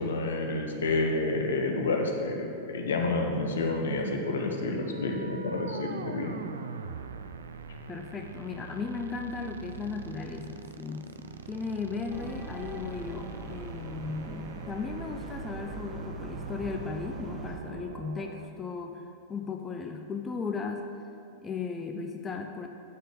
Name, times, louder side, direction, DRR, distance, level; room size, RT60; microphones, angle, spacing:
voice 1, 0.0-6.4, left 2 dB, 65° left, 2 dB, 0.9 m, -29 dB
sound 1, 4.6-18.5, right 6 dB, 65° right, 0.4 m, -42 dB
voice 2, 7.9-11.1 11.3-20.9 21.4-22.7, left 5 dB, 20° left, 3 dB, 0.4 m, -36 dB
sound 2, 12.1-17.6, right 1 dB, 15° right, 0.9 m, -43 dB
8.2 x 6.6 x 3.8 m, 2.7 s
figure-of-eight pair, 95°, 0 cm